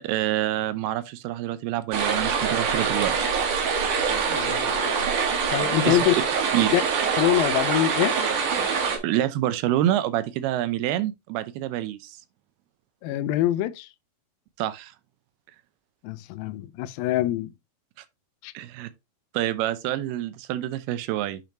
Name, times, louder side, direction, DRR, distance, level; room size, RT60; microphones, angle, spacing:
voice 1, 0.0-3.3 5.9-6.0 6.5-6.7 9.0-12.2 14.6-14.9 18.5-18.9 19.3-21.4, right 13 dB, 80° right, 2.7 m, -27 dB
sound 1, 1.9-9.0, right 6 dB, 60° right, 2.9 m, -24 dB
voice 2, 4.3-5.1 5.5-6.1 6.7-6.8 7.2-8.2 13.0-13.9 16.0-17.5 18.4-18.5, left 14 dB, 80° left, 2.2 m, -24 dB
8.9 x 5.2 x 2.9 m
omnidirectional pair, 4.6 m